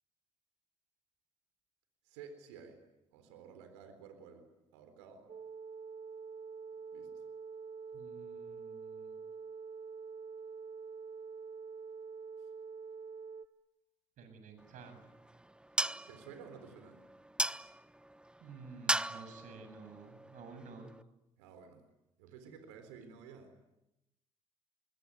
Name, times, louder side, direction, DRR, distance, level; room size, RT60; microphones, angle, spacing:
voice 1, 2.0-2.8 3.1-5.3 6.9-7.2 16.1-17.0 21.4-21.8 22.2-23.5, right 6 dB, 80° right, 8 dB, 3.9 m, -53 dB
sound 1, 5.3-13.5, right 5 dB, 45° right, 2.0 m, -46 dB
voice 2, 7.9-9.2 14.2-15.1 18.4-20.9, right 4 dB, 65° right, 8 dB, 7.6 m, -52 dB
sound 2, 14.6-21.0, right 1 dB, 5° right, 1.1 m, -39 dB
26.0 x 21.5 x 9.6 m, 0.90 s
hypercardioid pair, 60°, 14 cm